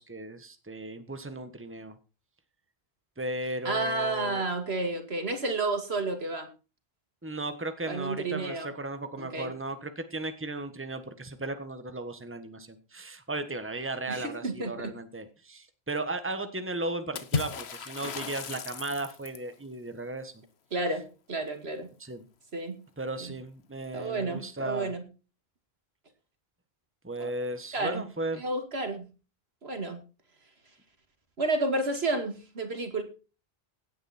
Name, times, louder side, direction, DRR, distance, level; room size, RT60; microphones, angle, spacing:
voice 1, 0.0-2.0 3.2-4.4 7.2-20.4 22.0-22.2 23.0-24.9 27.0-28.4, right 2 dB, 10° right, 9 dB, 1.4 m, -36 dB
voice 2, 3.6-6.5 7.9-8.7 9.2-9.5 14.1-14.9 20.7-21.9 22.5-22.8 23.2-23.3 23.9-25.0 27.2-27.3 27.7-28.1 28.4-29.1 29.6-30.0 31.4-33.0, right 2 dB, 80° right, 7 dB, 2.5 m, -31 dB
Water / Splash splatter, 17.2-19.5, left 6 dB, 90° left, 1.3 m, -34 dB
17.0 x 9.1 x 4.4 m, 0.34 s
omnidirectional pair, 1.0 m